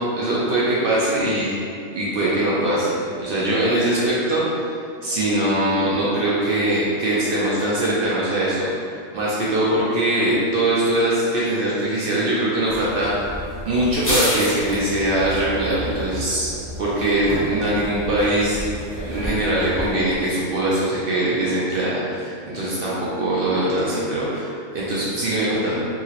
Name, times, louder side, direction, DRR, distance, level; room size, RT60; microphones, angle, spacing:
voice 1, 0.0-1.5 1.9-4.4 5.0-13.1 13.6-16.5 16.8-18.6 19.1-25.8, right 1 dB, 70° right, -7 dB, 0.5 m, -22 dB
sound 1, 12.6-20.2, equal, 15° left, 0.5 m, -30 dB
2.8 x 2.8 x 2.8 m, 2.4 s
omnidirectional pair, 1.5 m